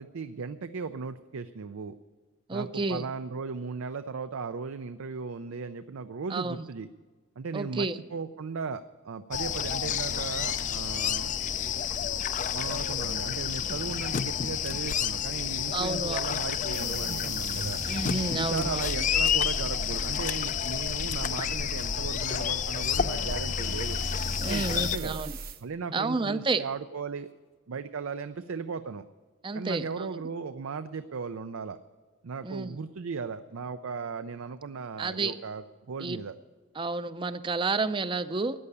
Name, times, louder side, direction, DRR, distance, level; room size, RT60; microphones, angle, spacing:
voice 1, 0.0-2.0 2.5-6.9 7.4-11.3 12.5-17.8 18.3-24.0 24.4-25.2 25.6-27.3 27.7-29.0 29.5-31.8 32.2-36.4, right 5 dB, 80° right, 10 dB, 0.5 m, -36 dB
voice 2, 2.5-3.0 6.3-6.6 7.5-8.0 15.7-16.4 17.9-19.0 24.4-25.3 25.9-26.6 29.4-30.1 32.4-32.8 35.0-35.4 36.0-36.2 36.8-38.6, right 3 dB, 25° right, 13 dB, 0.5 m, -30 dB
sound 1, 9.3-25.0, left 8 dB, 35° left, 0.4 m, -30 dB
sound 2, 10.4-11.5 13.1-14.2 16.2-17.3 20.2-21.3 23.1-24.2, left 12 dB, 90° left, 0.8 m, -46 dB
sound 3, 16.7-25.6, right 2 dB, 45° right, 0.9 m, -39 dB
14.0 x 9.7 x 6.7 m, 1.4 s
head